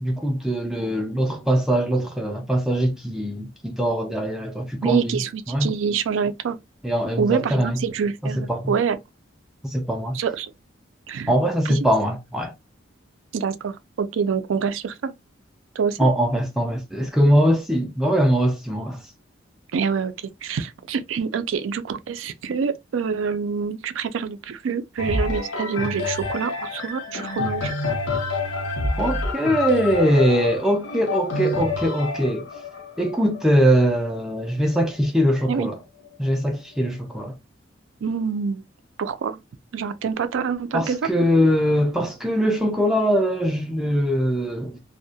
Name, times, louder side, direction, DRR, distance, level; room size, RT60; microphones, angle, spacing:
voice 1, 0.0-5.2 5.5-5.7 6.8-7.8 8.2-8.7 9.6-10.2 11.3-12.5 16.0-19.1 29.0-32.5 33.0-35.8 36.2-37.3 40.7-44.8, equal, ahead, 0.3 m, -22 dB
voice 2, 4.8-6.6 7.2-9.0 10.1-10.5 11.1-11.3 11.7-11.8 13.3-15.1 15.8-16.0 19.7-27.7 35.5-35.7 38.0-38.6 39.0-39.4 39.7-41.1, right 6 dB, 75° right, 0.4 m, -26 dB
sound 1, 25.0-34.8 35.4-35.5, left 3 dB, 90° left, 0.8 m, -28 dB
2.2 x 2.1 x 2.6 m
head